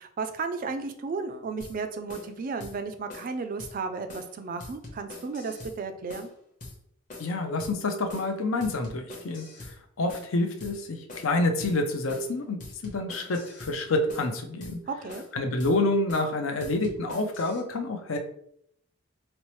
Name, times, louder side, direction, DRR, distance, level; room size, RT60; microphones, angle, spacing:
voice 1, 0.0-6.3 14.9-15.2, right 4 dB, 40° right, 8 dB, 0.3 m, -34 dB
sound 1, 1.6-1.8 2.1-2.3 2.6-2.8 3.1-3.3 3.6-3.8 4.1-4.3 4.6-5.8 6.1-6.3 6.6-6.8 7.1-7.3 7.6-7.8 8.1-8.3 8.6-9.8 10.1-10.3 10.6-10.8 11.1-11.3 11.6-11.8 12.1-12.3 12.6-13.8 14.1-14.3 14.6-14.8 15.1-15.3 15.6-15.8 16.1-16.3 16.6-17.6, left 2 dB, 40° left, 0.9 m, -44 dB
voice 2, 7.2-14.8 15.3-18.2, left 2 dB, 75° left, 5 dB, 0.6 m, -28 dB
4.3 x 2.0 x 3.0 m, 0.70 s
head